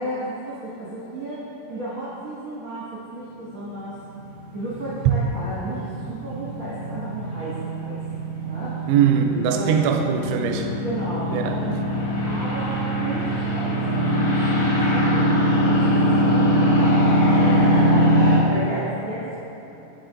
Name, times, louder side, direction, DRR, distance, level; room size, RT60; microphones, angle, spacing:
voice 1, 0.0-1.4 1.7-2.9 3.1-3.9 4.5-8.0 8.4-8.7 9.5-9.8 10.8-11.8 12.2-16.8 17.3-18.1 18.4-19.4, right 1 dB, 55° right, -12 dB, 1.5 m, -33 dB
sound 1, 3.7-18.4, equal, 90° left, 1.3 m, -22 dB
voice 2, 8.9-10.7 11.3-11.6, right 7 dB, 90° right, 4 dB, 2.7 m, -21 dB
7.8 x 7.3 x 2.5 m, 3.0 s
omnidirectional pair, 4.8 m